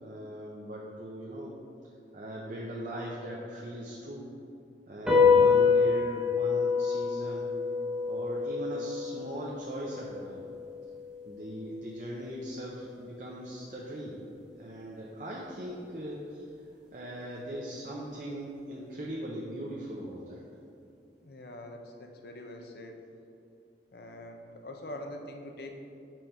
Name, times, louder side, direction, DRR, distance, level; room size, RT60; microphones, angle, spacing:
voice 1, 0.0-1.5 2.1-4.3 4.9-7.5 8.1-10.4 11.2-14.2 14.6-16.5 16.9-20.4, equal, 45° right, -4 dB, 0.7 m, -39 dB
sound 1, 5.1-11.8, left 5 dB, 5° right, 0.9 m, -27 dB
voice 2, 21.2-23.0 23.9-25.7, left 1 dB, 55° left, 3 dB, 0.7 m, -44 dB
6.2 x 5.1 x 4.4 m, 2.6 s
head